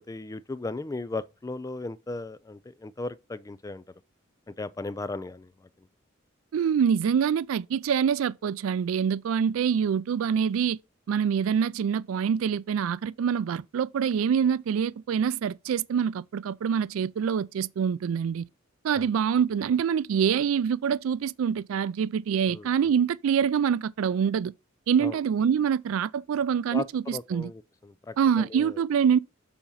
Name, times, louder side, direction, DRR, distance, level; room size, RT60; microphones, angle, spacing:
voice 1, 0.1-3.8 4.5-5.9 18.9-19.1 22.5-22.9 25.0-25.2 26.7-28.8, left 2 dB, 15° left, 0.3 m, -37 dB
voice 2, 6.5-10.8 11.1-18.5 18.8-24.5 24.9-27.5 28.2-29.2, right 7 dB, 90° right, 0.3 m, -25 dB
7.1 x 4.3 x 5.4 m
head